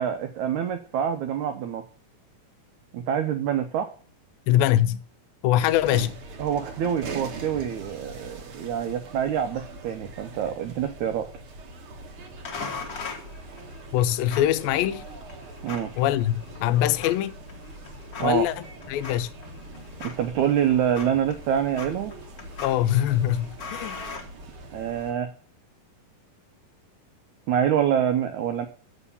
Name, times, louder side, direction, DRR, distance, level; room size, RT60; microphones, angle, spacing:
voice 1, 0.0-1.8 2.9-3.9 6.4-11.3 15.6-15.9 18.2-18.4 20.0-22.1 24.7-25.3 27.5-28.7, right 9 dB, 90° right, 1.6 m, -26 dB
voice 2, 4.5-5.0 5.4-6.2 13.9-15.1 16.0-17.4 18.2-19.3 22.6-24.0, left 12 dB, 85° left, 2.2 m, -23 dB
Barton Springs Long, 5.6-25.1, right 2 dB, 55° right, 1.5 m, -42 dB
sound 1, 12.4-24.9, left 4 dB, 65° left, 0.9 m, -41 dB
6.9 x 6.8 x 7.0 m
omnidirectional pair, 4.2 m